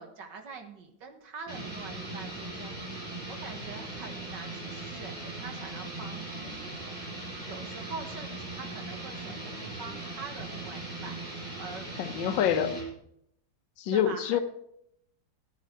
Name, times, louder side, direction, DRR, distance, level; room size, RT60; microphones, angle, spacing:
voice 1, 0.0-11.2 11.6-11.9 13.9-14.4, right 5 dB, 75° right, 4 dB, 2.1 m, -45 dB
sound 1, 1.5-12.9, right 2 dB, 20° right, 5.5 m, -39 dB
voice 2, 12.0-12.7 13.8-14.4, left 9 dB, 90° left, 10 dB, 1.5 m, -26 dB
13.5 x 9.2 x 4.4 m, 0.74 s
omnidirectional pair, 2.0 m